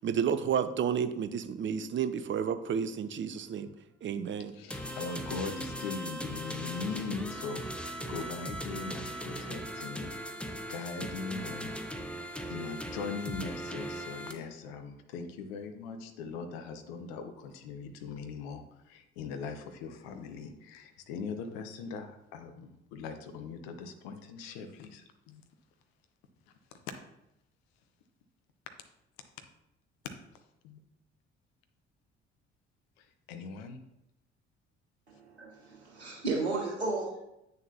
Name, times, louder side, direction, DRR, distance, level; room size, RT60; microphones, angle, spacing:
voice 1, 0.0-3.7 4.0-4.5, right 7 dB, 35° right, 11 dB, 0.6 m, -31 dB
voice 2, 4.5-10.1 10.7-12.0 12.5-25.4 26.5-26.9 29.4-29.5 30.6-30.8 33.0-33.8, left 5 dB, 70° left, 7 dB, 0.9 m, -40 dB
sound 1, 4.7-14.3, equal, 5° left, 0.9 m, -39 dB
voice 3, 35.1-37.2, right 3 dB, 90° right, -2 dB, 1.2 m, -34 dB
8.5 x 6.5 x 2.8 m, 0.86 s
figure-of-eight pair, 45°, 32 cm